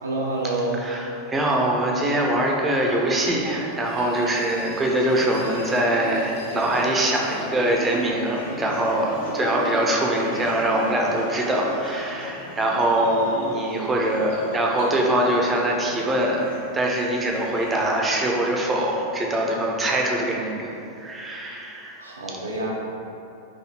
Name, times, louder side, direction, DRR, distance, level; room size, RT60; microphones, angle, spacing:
voice 1, 0.0-0.8 22.0-22.7, right 2 dB, 75° right, -3 dB, 0.5 m, -27 dB
voice 2, 0.8-22.0, right 1 dB, 15° right, -1 dB, 0.5 m, -23 dB
Crowd, 3.0-9.2, equal, 90° right, 1.2 m, -45 dB
sound 1, 3.7-18.0, left 1 dB, 70° left, 1.1 m, -46 dB
Musical instrument, 5.0-16.5, left 1 dB, 55° left, 0.6 m, -35 dB
4.0 x 2.6 x 2.9 m, 2.8 s
figure-of-eight pair, 90°, 0 cm